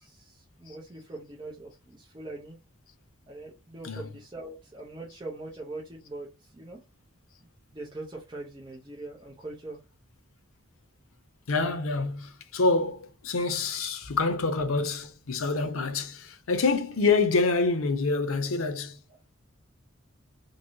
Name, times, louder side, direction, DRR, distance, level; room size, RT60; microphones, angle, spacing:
voice 1, 0.0-2.6 3.3-6.8 7.7-9.8, right 2 dB, 20° right, 0.6 m, -42 dB
voice 2, 3.8-4.2 11.5-19.0, left 3 dB, 85° left, 0.6 m, -27 dB
3.1 x 2.6 x 2.7 m
head